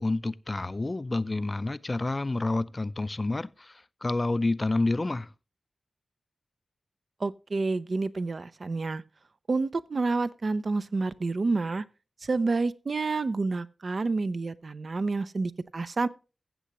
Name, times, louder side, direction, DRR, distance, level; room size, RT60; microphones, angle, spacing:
voice 1, 0.0-5.3, left 2 dB, 30° left, 0.4 m, -29 dB
voice 2, 7.2-9.0 9.5-11.8 12.2-16.1, right 3 dB, 55° right, 0.5 m, -29 dB
15.0 x 7.5 x 2.9 m
wide cardioid pair, 70°, 0 cm